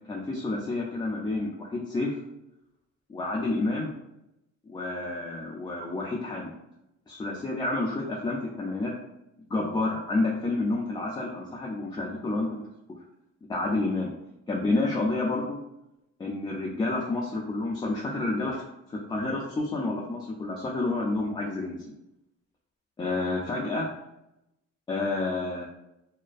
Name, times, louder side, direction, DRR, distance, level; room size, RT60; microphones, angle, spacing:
voice 1, 0.1-2.2 3.1-3.9 4.7-6.5 7.1-8.9 9.5-12.6 13.5-14.1 14.5-15.6 16.2-18.6 18.9-21.8 23.0-23.8 24.9-25.7, left 2 dB, 15° left, -3 dB, 0.3 m, -29 dB
2.4 x 2.1 x 2.4 m, 0.87 s
cardioid pair, 90°, 30 cm